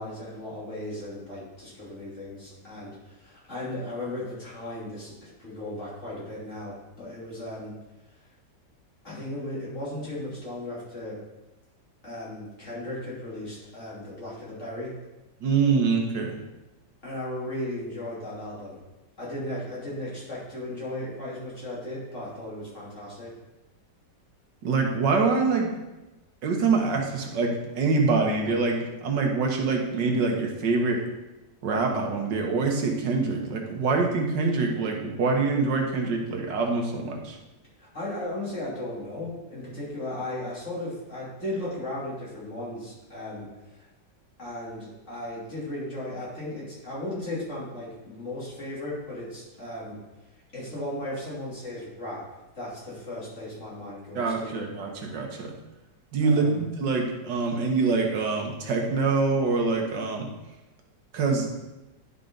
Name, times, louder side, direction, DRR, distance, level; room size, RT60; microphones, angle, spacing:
voice 1, 0.0-7.8 9.0-11.2 12.0-14.9 17.0-18.8 19.2-23.3 37.8-43.9 44.4-50.0 50.5-52.3 52.6-54.6 56.2-56.6, left 1 dB, 40° left, -7 dB, 3.3 m, -36 dB
voice 2, 15.4-16.4 24.6-25.8 26.4-31.0 31.6-37.4 54.2-55.5 56.1-60.3 61.1-61.5, right 4 dB, 85° right, 1 dB, 1.8 m, -25 dB
11.0 x 5.6 x 3.9 m, 1.0 s
omnidirectional pair, 1.9 m